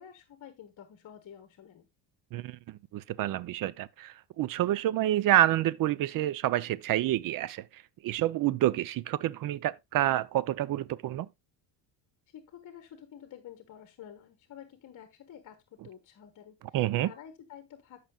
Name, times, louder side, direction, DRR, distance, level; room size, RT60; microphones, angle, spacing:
voice 1, 0.0-1.9 12.3-16.8 17.0-18.1, left 9 dB, 40° left, 1.3 m, -50 dB
voice 2, 2.3-11.3 16.7-17.1, right 13 dB, 45° right, 0.6 m, -28 dB
14.0 x 5.9 x 2.3 m
cardioid pair, 115°, 47 cm